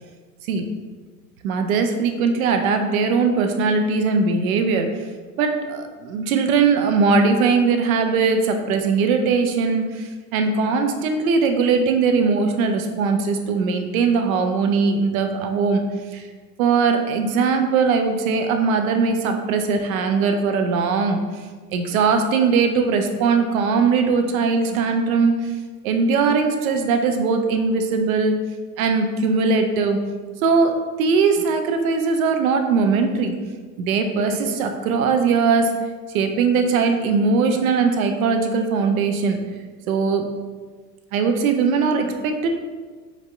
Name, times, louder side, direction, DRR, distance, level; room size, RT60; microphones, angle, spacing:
voice 1, 1.4-4.9 5.4-15.8 16.1-16.2 16.6-21.2 21.7-25.4 25.8-28.4 28.8-30.0 30.4-30.7 31.0-33.3 33.8-35.7 36.1-39.4 39.9-40.3 41.1-42.5, right 5 dB, 60° right, 5 dB, 0.7 m, -20 dB
5.0 x 3.4 x 2.5 m, 1.4 s
figure-of-eight pair, 80°, 49 cm